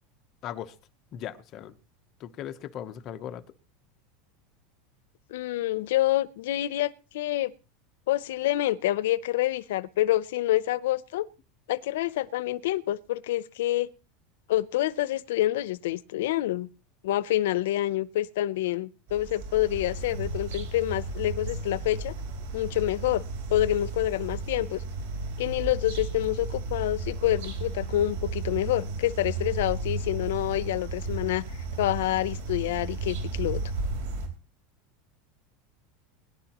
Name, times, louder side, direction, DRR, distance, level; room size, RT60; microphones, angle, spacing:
voice 1, 0.4-0.7 1.1-1.8 2.2-3.4, left 10 dB, 30° left, 0.9 m, -38 dB
voice 2, 5.3-7.5 8.1-11.3 11.7-13.9 14.5-16.7 17.0-22.1 22.5-23.2 23.5-24.8 25.4-31.4 31.8-33.6, left 14 dB, 85° left, 0.6 m, -27 dB
sound 1, 19.1-34.3, right 3 dB, 80° right, 4.0 m, -34 dB
21.5 x 11.0 x 3.0 m
supercardioid pair, 175°, 0 cm